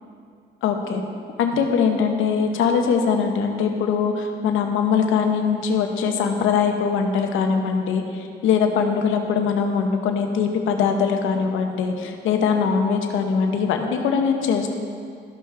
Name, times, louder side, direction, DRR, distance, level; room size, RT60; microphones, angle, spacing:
voice 1, 0.6-1.0 1.4-14.7, left 6 dB, 85° left, 4 dB, 0.9 m, -22 dB
13.5 x 5.7 x 3.2 m, 2.2 s
cardioid pair, 90°, 20 cm